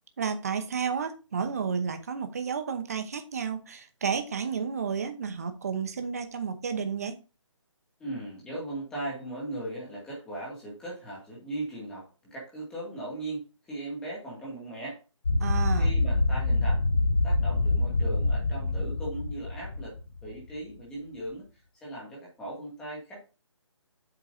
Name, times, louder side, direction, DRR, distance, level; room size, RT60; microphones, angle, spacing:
voice 1, 0.2-7.1 15.4-15.9, right 6 dB, 30° right, 0.9 m, -31 dB
voice 2, 8.0-15.0 15.8-16.9 17.2-23.2, right 1 dB, 5° left, 2.1 m, -38 dB
sound 1, 15.2-20.3, left 2 dB, 20° left, 0.4 m, -25 dB
8.2 x 7.3 x 2.7 m
hypercardioid pair, 175°, 16 cm